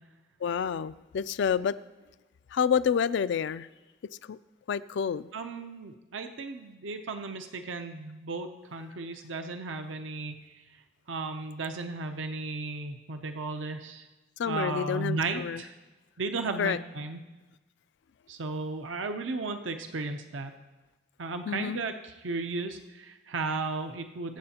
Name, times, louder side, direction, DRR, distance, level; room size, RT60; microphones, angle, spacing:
voice 1, 0.4-1.8 2.5-3.7 4.3-4.4 4.7-5.3 14.4-15.6 16.6-16.8 21.4-21.8, left 7 dB, 65° left, 17 dB, 0.3 m, -28 dB
voice 2, 5.3-10.6 11.1-14.1 14.5-15.7 16.2-17.2 18.3-20.5 21.2-24.4, right 3 dB, 80° right, 7 dB, 0.6 m, -35 dB
22.0 x 7.6 x 2.8 m, 1.2 s
head